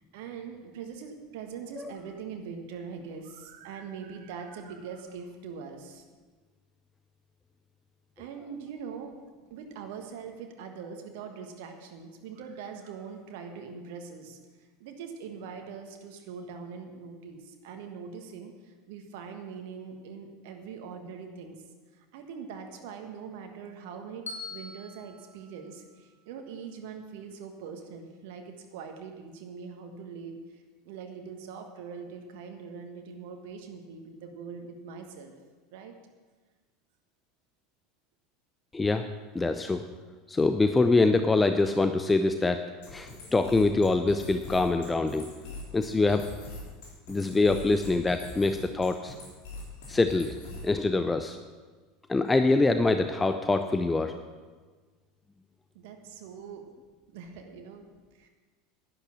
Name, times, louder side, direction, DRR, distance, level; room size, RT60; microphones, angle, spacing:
voice 1, 0.1-6.0 8.2-9.2 9.5-21.6 21.9-35.3 35.7-35.9 55.7-56.6 57.1-57.9 58.1-58.3, right 6 dB, 55° right, 4 dB, 1.5 m, -42 dB
Bell, 24.3-26.4, left 3 dB, 80° left, 1.6 m, -44 dB
voice 2, 38.7-39.1 39.3-39.8 40.3-42.6 42.9-45.3 45.7-46.3 47.1-49.1 49.9-50.4 50.6-51.4 52.1-54.1, left 3 dB, 15° left, 8 dB, 0.6 m, -24 dB
sound 1, 42.8-50.8, left 2 dB, 60° left, 3.8 m, -43 dB
11.5 x 11.0 x 6.1 m, 1.4 s
figure-of-eight pair, 75°, 0 cm